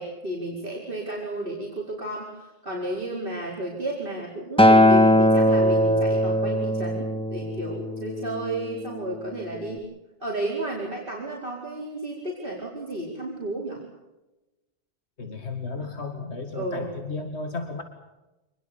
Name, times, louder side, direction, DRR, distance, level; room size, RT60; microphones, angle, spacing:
voice 1, 0.0-9.8 10.2-13.8 16.5-16.9, right 1 dB, 55° right, -4 dB, 5.2 m, -32 dB
Acoustic guitar, 4.6-8.9 9.7-9.8, left 1 dB, 5° left, 1.7 m, -20 dB
voice 2, 15.2-17.8, left 3 dB, 85° left, 5 dB, 2.5 m, -33 dB
26.0 x 21.0 x 7.0 m, 1.0 s
omnidirectional pair, 1.1 m